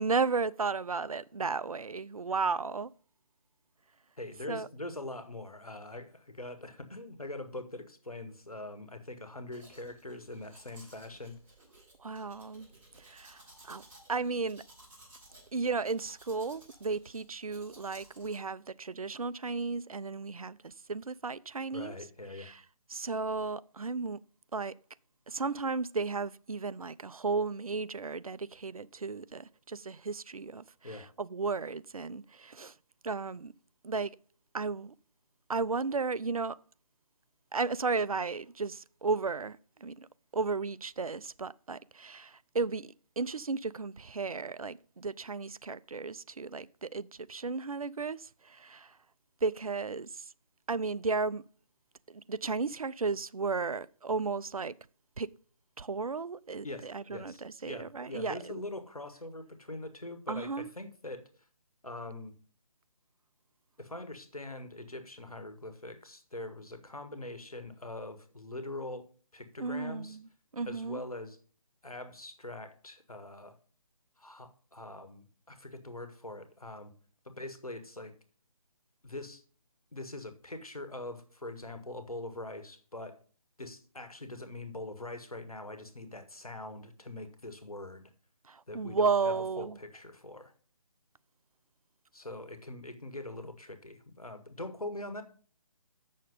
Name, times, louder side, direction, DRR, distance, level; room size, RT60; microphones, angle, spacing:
voice 1, 0.0-2.9 4.5-4.7 12.0-12.7 13.0-13.8 14.1-14.6 15.5-22.0 22.4-22.6 22.9-24.2 24.5-24.7 25.3-32.7 33.0-33.5 33.8-34.1 34.5-34.9 35.5-36.6 37.5-40.1 40.3-49.0 49.4-50.3 50.7-51.4 52.1-54.7 55.2-55.3 55.8-58.6 60.3-60.7 69.6-70.3 70.5-71.0 88.4-89.8, right 4 dB, 75° right, 0.5 m, -34 dB
voice 2, 4.2-11.4 21.7-22.5 30.8-31.1 56.6-61.3 61.8-62.3 63.8-69.1 69.3-70.2 70.6-71.4 71.8-73.5 74.2-76.9 77.2-78.1 79.0-79.4 79.9-83.2 83.6-88.1 88.7-90.5 92.1-95.2, left 2 dB, 85° left, 1.6 m, -43 dB
Domestic sounds home sounds, 9.5-18.4, right 1 dB, 20° right, 5.2 m, -57 dB
7.7 x 6.4 x 5.4 m
figure-of-eight pair, 150°, 18 cm